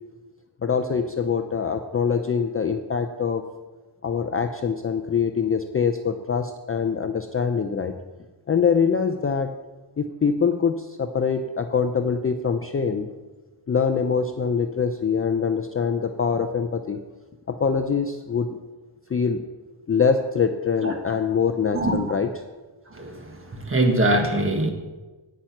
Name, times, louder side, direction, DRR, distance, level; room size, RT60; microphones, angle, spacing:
voice 1, 0.6-3.4 4.0-7.9 8.5-9.6 10.0-13.1 13.7-17.0 17.5-18.6 19.1-19.5 19.9-22.3, left 6 dB, 30° left, 6 dB, 0.4 m, -24 dB
voice 2, 22.9-24.7, right 1 dB, 25° right, 3 dB, 1.5 m, -23 dB
9.2 x 8.7 x 5.9 m, 1.2 s
wide cardioid pair, 150°, 49 cm